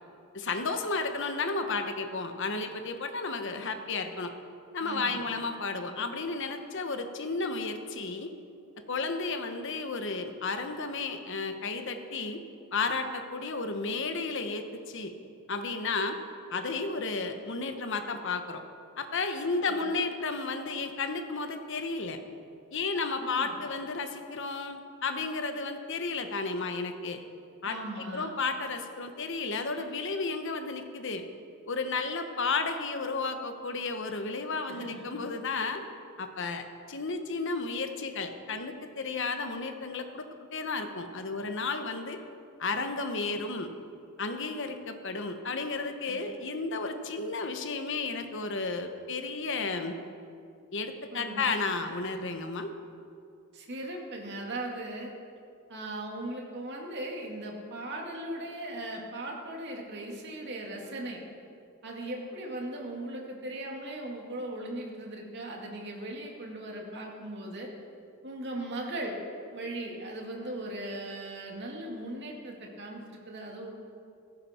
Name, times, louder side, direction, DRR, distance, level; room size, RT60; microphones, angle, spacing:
voice 1, 0.3-4.3 4.7-8.3 8.9-12.4 12.7-15.1 15.5-16.2 16.5-18.6 19.0-22.2 22.7-27.2 27.6-31.2 31.7-35.8 36.2-42.2 42.6-43.7 44.2-50.0 50.7-52.7, left 3 dB, 60° left, 7 dB, 1.1 m, -33 dB
voice 2, 4.8-5.3 19.7-19.9 23.2-23.6 27.6-28.3 34.7-35.2 46.1-46.2 51.1-51.4 53.5-55.1 55.7-61.2 61.8-67.7 68.2-69.2 69.5-73.7, right 1 dB, 50° right, 0 dB, 2.3 m, -38 dB
16.0 x 14.5 x 4.4 m, 2.5 s
head